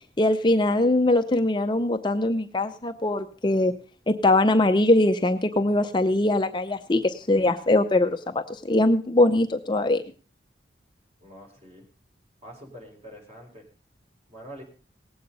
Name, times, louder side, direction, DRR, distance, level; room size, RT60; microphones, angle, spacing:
voice 1, 0.2-3.7 4.1-10.0, left 2 dB, 25° left, 7 dB, 0.6 m, -22 dB
voice 2, 11.2-11.8 12.4-13.7 14.3-14.6, equal, 35° right, 1 dB, 4.3 m, -45 dB
18.0 x 8.3 x 5.3 m, 0.40 s
head